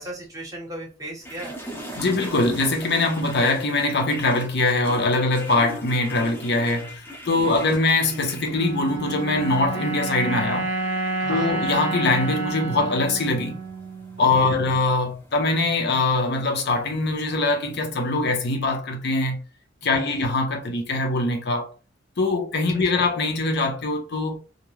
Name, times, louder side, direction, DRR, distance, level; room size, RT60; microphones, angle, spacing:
voice 1, 0.0-1.5 7.4-7.7 11.2-11.6 14.2-14.5 19.8-20.2 22.9-23.0, right 1 dB, 15° right, 0.8 m, -36 dB
sound 1, 1.2-18.3, equal, 10° left, 0.6 m, -42 dB
voice 2, 1.9-10.7 11.3-13.6 14.2-19.4 19.8-21.7 22.2-24.5, left 2 dB, 55° left, 0.6 m, -23 dB
sound 2, 8.5-14.9, right 3 dB, 55° right, 0.4 m, -29 dB
2.4 x 2.1 x 3.1 m
head